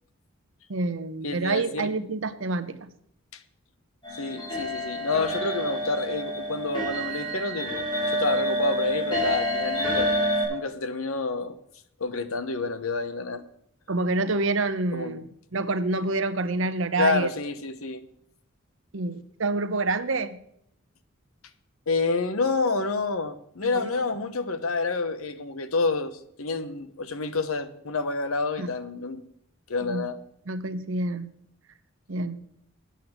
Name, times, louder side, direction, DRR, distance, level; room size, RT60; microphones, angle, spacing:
voice 1, 0.7-2.9 13.9-17.3 18.9-20.4 23.6-23.9 28.6-28.7 29.8-30.1 30.5-31.3 32.1-32.4, right 2 dB, 65° right, 11 dB, 0.8 m, -27 dB
voice 2, 1.2-1.9 3.3-3.4 4.2-10.1 10.5-11.6 12.0-13.4 14.9-15.1 17.0-18.1 21.9-29.2 29.7-30.2, left 3 dB, 90° left, 11 dB, 0.9 m, -28 dB
sound 1, 4.0-10.4, equal, 20° left, 5.8 m, -28 dB
8.8 x 8.5 x 7.3 m, 0.71 s
head